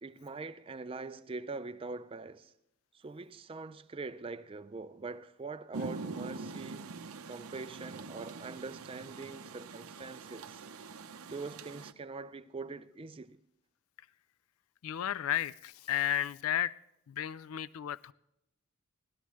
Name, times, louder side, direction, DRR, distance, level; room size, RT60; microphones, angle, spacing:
voice 1, 0.0-2.5 2.9-6.9 7.3-10.6 11.3-13.4, right 3 dB, 25° right, 0.4 m, -43 dB
Rain, 5.7-11.9, right 4 dB, 70° right, 0.6 m, -44 dB
voice 2, 14.8-16.7 17.1-18.1, left 11 dB, 70° left, 0.3 m, -33 dB
17.0 x 13.0 x 3.1 m
head